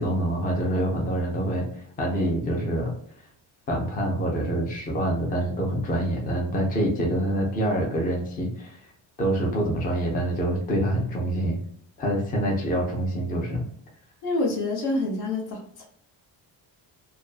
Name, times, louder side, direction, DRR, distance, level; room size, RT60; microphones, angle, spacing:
voice 1, 0.0-2.9 3.7-8.8 9.2-11.6 12.0-13.7, right 1 dB, 20° left, -1 dB, 0.5 m, -26 dB
voice 2, 14.2-15.8, left 2 dB, 70° left, 0 dB, 1.0 m, -27 dB
2.5 x 2.2 x 2.4 m, 0.66 s
cardioid pair, 175°, 40 cm